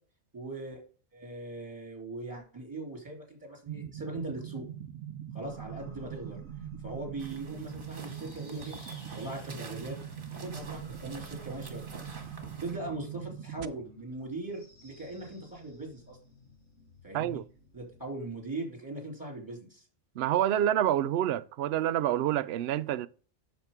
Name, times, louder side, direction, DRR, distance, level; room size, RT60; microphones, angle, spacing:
voice 1, 0.3-0.8 1.1-4.6 5.3-6.4 6.8-8.8 9.1-10.0 10.3-16.2 17.0-17.4 17.7-19.8, right 2 dB, 15° right, 3.2 m, -40 dB
sound 1, 3.7-13.7, right 10 dB, 90° right, 1.0 m, -42 dB
sound 2, 5.4-18.1, equal, 60° left, 3.6 m, -55 dB
sound 3, 7.2-12.8, right 3 dB, 40° right, 1.6 m, -49 dB
voice 2, 20.2-23.1, right 11 dB, 65° right, 0.7 m, -27 dB
8.2 x 6.7 x 3.6 m
omnidirectional pair, 1.3 m